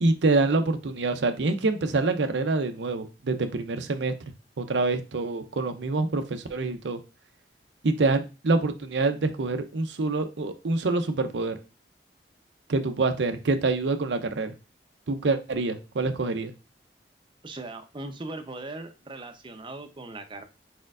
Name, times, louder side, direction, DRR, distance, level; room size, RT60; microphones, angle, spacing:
voice 1, 0.0-4.1 4.6-7.0 7.8-11.6 12.7-14.5 15.1-16.5, right 3 dB, 90° right, 7 dB, 0.6 m, -26 dB
voice 2, 17.4-20.4, right 2 dB, 30° right, 7 dB, 0.7 m, -39 dB
4.4 x 4.3 x 2.4 m, 0.30 s
head